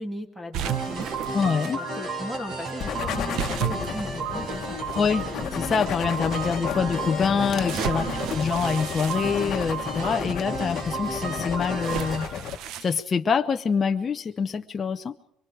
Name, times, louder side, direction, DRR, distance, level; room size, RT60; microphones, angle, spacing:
voice 1, 0.0-1.4 1.7-5.1 7.9-8.3, left 1 dB, 5° right, 5 dB, 2.5 m, -38 dB
sound 1, 0.5-1.7 3.3-5.0 5.7-5.8 7.6-10.0 11.8-13.0, right 11 dB, 65° right, 1.1 m, -33 dB
sound 2, 0.6-12.2, right 3 dB, 45° right, 4.8 m, -33 dB
voice 2, 1.3-1.8 5.0-5.2 5.5-12.3 12.8-15.1, left 6 dB, 25° left, 5 dB, 0.8 m, -25 dB
sound 3, 2.8-12.6, left 9 dB, 45° left, 1.5 m, -33 dB
24.5 x 24.0 x 5.0 m, 0.71 s
cardioid pair, 150°, 0 cm